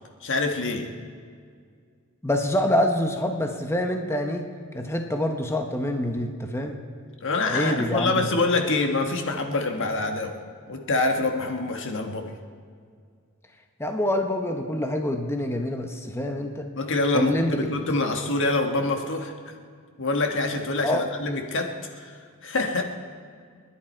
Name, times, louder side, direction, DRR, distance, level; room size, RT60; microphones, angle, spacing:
voice 1, 0.2-0.9 7.2-10.4 10.7-12.3 16.7-19.3 20.0-22.8, left 2 dB, 60° left, 4 dB, 1.6 m, -26 dB
voice 2, 2.2-4.5 4.7-6.8 7.4-8.3 13.8-16.7 17.1-17.6 20.8-21.0, left 1 dB, 10° left, 4 dB, 0.9 m, -26 dB
29.0 x 10.5 x 4.5 m, 2.1 s
head